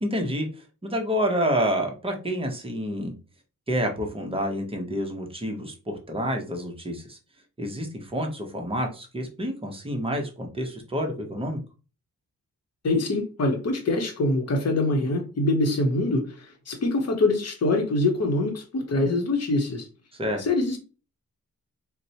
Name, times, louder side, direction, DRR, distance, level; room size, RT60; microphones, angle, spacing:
voice 1, 0.0-3.1 3.7-7.2 7.6-11.6 20.2-20.4, equal, 15° right, 0.7 m, -28 dB
voice 2, 12.8-19.9 20.4-20.8, left 2 dB, 45° left, 0.8 m, -24 dB
4.2 x 2.1 x 2.7 m
wide cardioid pair, 175°, 35 cm